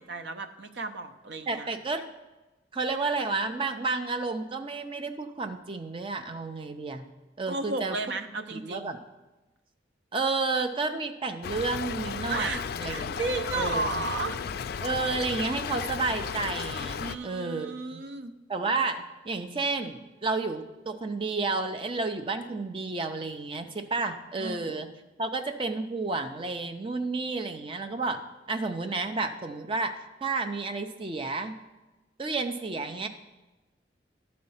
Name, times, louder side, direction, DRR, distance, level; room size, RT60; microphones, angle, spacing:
voice 1, 0.0-1.7 7.5-8.9 12.3-14.4 17.0-18.3 24.4-24.7, right 3 dB, 70° right, 8 dB, 0.6 m, -34 dB
voice 2, 1.5-2.0 2.7-7.1 7.4-8.0 8.5-9.0 10.1-13.2 13.5-14.0 14.8-18.0 18.5-24.9 25.2-28.2 28.5-31.6 32.2-33.1, right 3 dB, 30° right, 7 dB, 0.5 m, -31 dB
Stream / Trickle dribble, 11.4-17.2, left 6 dB, 55° left, 0.3 m, -34 dB
11.5 x 4.3 x 5.6 m, 1.1 s
head